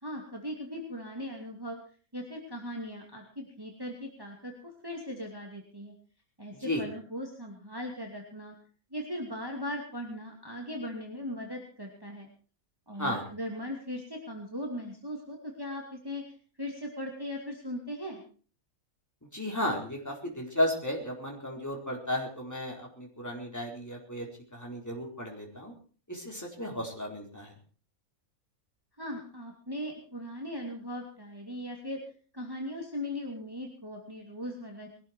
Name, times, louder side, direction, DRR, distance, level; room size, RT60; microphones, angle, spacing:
voice 1, 0.0-1.8 2.1-5.9 6.4-8.6 8.9-12.3 12.9-18.2 29.0-32.0 32.3-35.0, left 1 dB, 15° right, 0 dB, 2.7 m, -39 dB
voice 2, 19.3-25.7 26.1-27.5, left 1 dB, 10° left, 0 dB, 4.6 m, -34 dB
21.5 x 12.5 x 4.6 m, 0.39 s
omnidirectional pair, 1.5 m